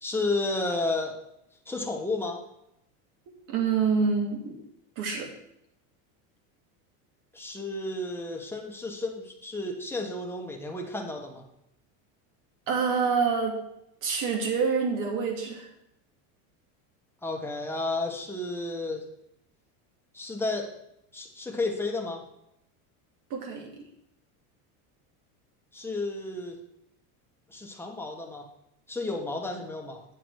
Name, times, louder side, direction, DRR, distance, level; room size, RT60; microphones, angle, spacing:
voice 1, 0.0-1.1 1.7-2.4 7.3-11.4 17.2-19.1 20.1-20.7 21.1-22.2 25.7-26.6 27.5-28.5 28.9-30.0, left 2 dB, 5° left, 1 dB, 1.3 m, -32 dB
voice 2, 3.5-4.6 5.0-5.3 12.7-13.6 14.0-15.7 23.3-23.8, right 5 dB, 50° right, 2 dB, 2.4 m, -27 dB
9.0 x 6.2 x 4.8 m, 0.79 s
supercardioid pair, 140°, 40 cm